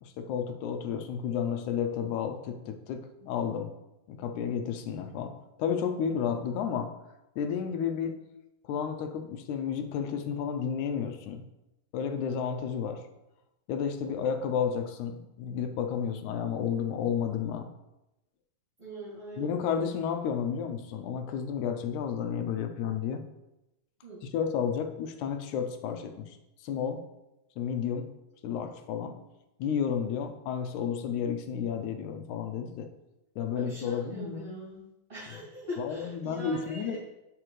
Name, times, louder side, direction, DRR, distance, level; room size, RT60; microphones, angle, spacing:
voice 1, 0.0-3.7 4.1-6.9 7.4-8.2 8.7-11.4 11.9-13.0 13.7-17.7 19.4-23.2 24.3-26.4 26.6-27.0 27.6-28.1 28.4-29.2 29.6-32.9 33.4-34.5 35.8-37.0, left 7 dB, 80° left, 6 dB, 1.9 m, -32 dB
voice 2, 18.8-20.0 24.0-24.2 33.5-34.8 35.1-37.0, equal, 20° right, -11 dB, 2.6 m, -42 dB
11.0 x 5.0 x 3.2 m, 0.94 s
omnidirectional pair, 3.7 m